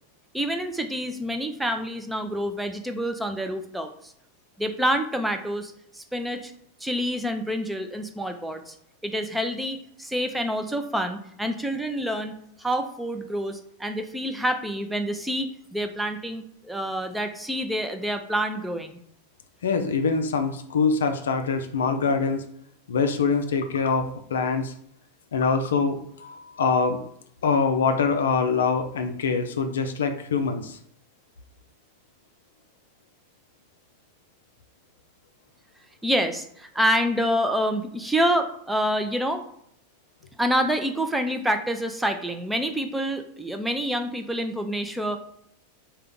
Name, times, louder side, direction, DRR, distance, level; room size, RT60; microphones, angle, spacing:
voice 1, 0.3-4.1 4.6-6.5 6.8-8.8 9.0-12.3 12.6-19.0 36.0-39.4 40.4-45.2, equal, 5° right, 6 dB, 0.4 m, -27 dB
voice 2, 19.6-22.4 22.9-24.7 25.3-27.0 27.4-30.8, left 5 dB, 65° left, 7 dB, 0.4 m, -24 dB
3.7 x 2.3 x 3.5 m, 0.69 s
figure-of-eight pair, 90°, 0 cm